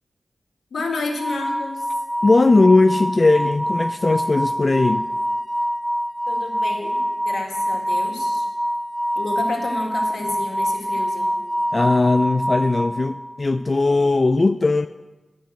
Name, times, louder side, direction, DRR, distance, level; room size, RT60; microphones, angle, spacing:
voice 1, 0.7-1.9 6.3-7.0 7.3-8.4 9.2-11.4, left 3 dB, 85° left, 0 dB, 1.9 m, -30 dB
Ringing sound from crystal glass in H (Bb)., 1.2-13.4, equal, 5° right, 1.6 m, -25 dB
voice 2, 2.2-5.1 11.7-14.9, left 3 dB, 40° left, 10 dB, 0.3 m, -18 dB
12.0 x 5.2 x 7.7 m, 1.2 s
cardioid pair, 65°, 0 cm